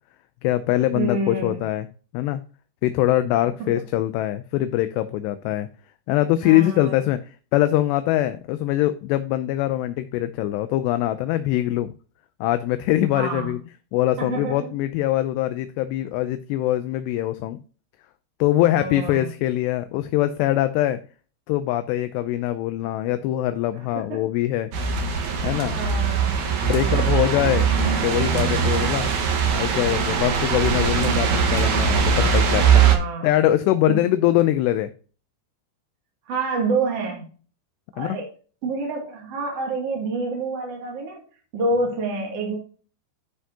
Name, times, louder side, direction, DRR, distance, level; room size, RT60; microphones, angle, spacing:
voice 1, 0.4-1.9 2.1-2.4 2.8-5.7 6.1-7.2 7.5-11.9 12.4-13.6 13.9-17.6 18.4-21.0 21.5-24.7 25.4-25.8 26.6-27.7 28.0-29.1 29.5-32.8 33.2-34.9 38.0-38.2, left 14 dB, 80° left, 10 dB, 2.6 m, -23 dB
voice 2, 0.9-1.6 3.6-3.7 6.4-7.0 13.1-13.5 14.2-14.7 18.7-19.3 23.9-24.2 25.7-26.3 26.8-27.2 32.7-33.3 33.9-34.0 36.3-37.3 37.9-38.3 38.6-41.2 41.5-42.6, right 3 dB, 40° right, -1 dB, 2.7 m, -28 dB
sound 1, 24.7-33.0, right 6 dB, 60° right, 2.1 m, -21 dB
12.5 x 5.6 x 2.8 m, 0.38 s
omnidirectional pair, 5.1 m